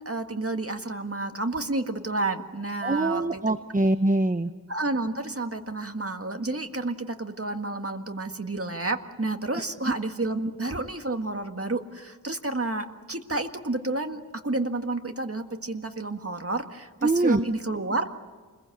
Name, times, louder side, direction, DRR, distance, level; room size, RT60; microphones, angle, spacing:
voice 1, 0.0-3.4 4.7-18.2, right 2 dB, 40° right, 5 dB, 1.8 m, -30 dB
voice 2, 2.8-4.5 17.0-17.4, right 2 dB, 25° right, 10 dB, 0.8 m, -23 dB
29.5 x 21.5 x 7.9 m, 1.4 s
wide cardioid pair, 40°, 35 cm